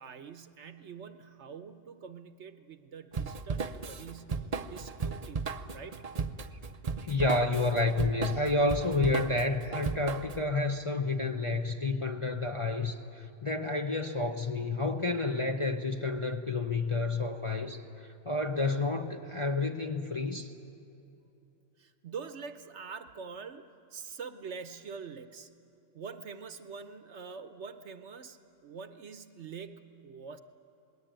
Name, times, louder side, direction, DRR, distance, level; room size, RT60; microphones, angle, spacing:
voice 1, 0.0-6.0 21.8-25.5 25.9-30.4, right 5 dB, 60° right, 10 dB, 1.1 m, -45 dB
Drum kit / Drum, 3.1-10.4, right 5 dB, 40° right, 0.6 m, -35 dB
voice 2, 7.0-17.8 18.3-20.5, left 3 dB, 30° left, 3 dB, 0.7 m, -30 dB
27.5 x 19.5 x 9.0 m, 2.8 s
omnidirectional pair, 1.4 m